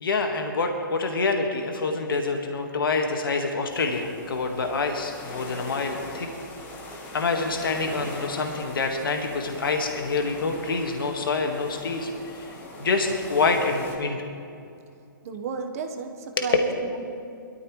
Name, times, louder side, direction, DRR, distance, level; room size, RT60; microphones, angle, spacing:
voice 1, 0.0-6.3 7.1-12.5 12.8-14.2 16.4-16.5, left 3 dB, 80° left, 3 dB, 1.7 m, -26 dB
sound 1, 3.7-14.0, left 1 dB, 15° left, 1.6 m, -41 dB
voice 2, 15.2-17.0, right 5 dB, 45° right, 5 dB, 1.2 m, -33 dB
21.5 x 13.5 x 3.2 m, 2.5 s
hypercardioid pair, 155°, 12 cm